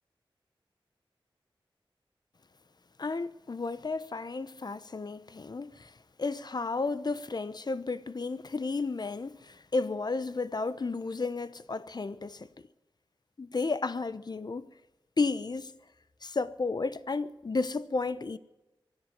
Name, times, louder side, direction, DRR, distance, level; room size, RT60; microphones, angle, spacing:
voice 1, 3.0-12.5 13.4-14.7 15.2-15.7 16.2-18.4, left 3 dB, 50° left, 0.9 m, -33 dB
23.5 x 8.2 x 7.5 m
wide cardioid pair, 65°, 9 cm